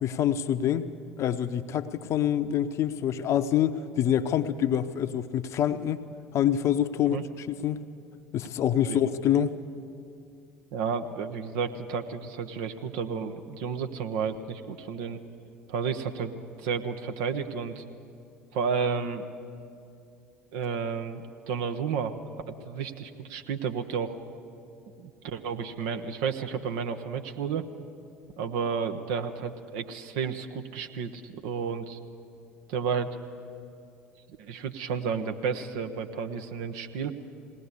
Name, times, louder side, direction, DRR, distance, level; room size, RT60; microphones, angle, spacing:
voice 1, 0.0-0.9 1.2-6.0 6.3-7.8 8.3-9.5, left 10 dB, 50° left, 11 dB, 0.8 m, -26 dB
voice 2, 10.7-15.2 15.7-16.3 16.6-17.8 18.5-19.2 20.5-21.2 21.5-22.2 22.5-24.1 25.0-27.7 28.4-32.0 32.7-33.1 34.4-37.2, right 6 dB, 65° right, 7 dB, 1.1 m, -31 dB
20.0 x 18.0 x 8.4 m, 2.5 s
figure-of-eight pair, 60°, 6 cm